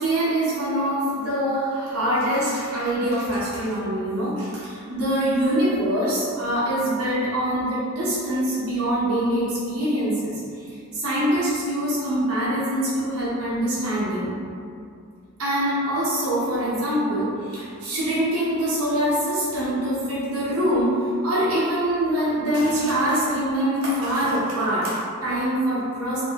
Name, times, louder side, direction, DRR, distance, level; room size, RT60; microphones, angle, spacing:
voice 1, 0.0-10.4 10.7-14.3 15.4-20.9 21.2-26.2, right 1 dB, 70° right, -10 dB, 0.9 m, -24 dB
2.6 x 2.5 x 2.8 m, 2.4 s
head